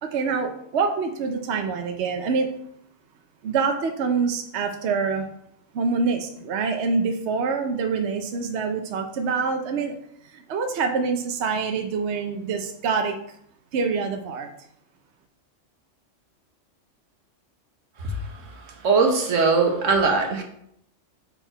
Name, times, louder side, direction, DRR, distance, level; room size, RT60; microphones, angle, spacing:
voice 1, 0.0-2.5 3.4-5.3 5.7-9.9 10.3-13.2 13.7-14.5, right 5 dB, 65° right, 5 dB, 0.9 m, -25 dB
voice 2, 18.8-20.4, right 4 dB, 85° right, 3 dB, 1.4 m, -20 dB
5.7 x 4.6 x 4.4 m, 0.73 s
omnidirectional pair, 1.3 m